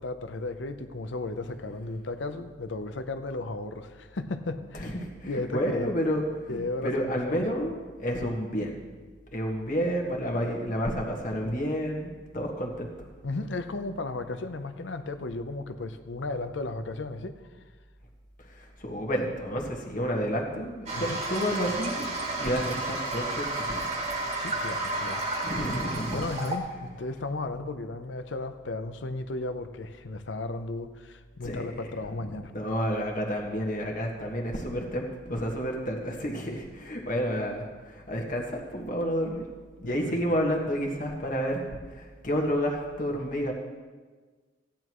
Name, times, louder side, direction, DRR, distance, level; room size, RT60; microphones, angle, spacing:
voice 1, 0.0-5.0 5.2-5.9 6.5-7.4 13.2-17.4 20.9-21.2 24.3-25.2 26.1-32.5 39.8-40.2, left 2 dB, 90° left, 9 dB, 0.7 m, -35 dB
voice 2, 4.7-8.8 9.3-13.1 18.4-22.0 22.4-23.9 25.4-26.3 31.4-39.4 39.8-43.5, equal, 45° left, 0 dB, 1.6 m, -30 dB
Toilet flush, 20.9-26.6, right 2 dB, 40° right, 1.9 m, -32 dB
16.0 x 10.0 x 3.1 m, 1.4 s
head